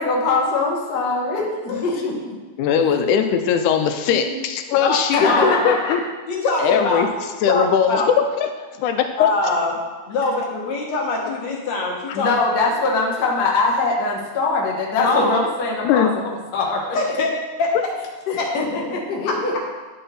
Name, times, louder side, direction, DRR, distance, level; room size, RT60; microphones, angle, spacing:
voice 1, 0.0-2.3 4.1-4.4 5.1-5.9 12.1-17.0 18.3-19.5, left 3 dB, 45° left, -2 dB, 1.4 m, -22 dB
voice 2, 2.6-6.0 6.6-7.1 7.4-8.0 8.4-8.5 8.8-9.3 15.8-16.1, left 7 dB, 90° left, 7 dB, 2.1 m, -20 dB
voice 3, 6.3-7.1 7.5-8.1 9.2-9.8 10.0-12.3 15.0-15.3 16.9-17.3 17.6-17.7 18.4-18.5, left 3 dB, 65° left, -2 dB, 2.7 m, -23 dB
10.0 x 5.5 x 4.2 m, 1.3 s
omnidirectional pair, 3.4 m